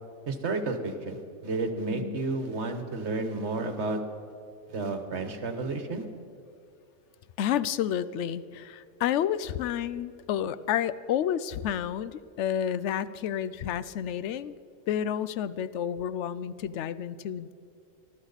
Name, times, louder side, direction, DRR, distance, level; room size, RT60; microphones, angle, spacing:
voice 1, 0.3-4.0 4.7-6.0, right 3 dB, 55° right, 7 dB, 1.5 m, -31 dB
voice 2, 7.4-14.6 14.9-17.5, left 9 dB, 65° left, 16 dB, 0.8 m, -30 dB
20.0 x 13.0 x 4.1 m, 2.5 s
omnidirectional pair, 1.4 m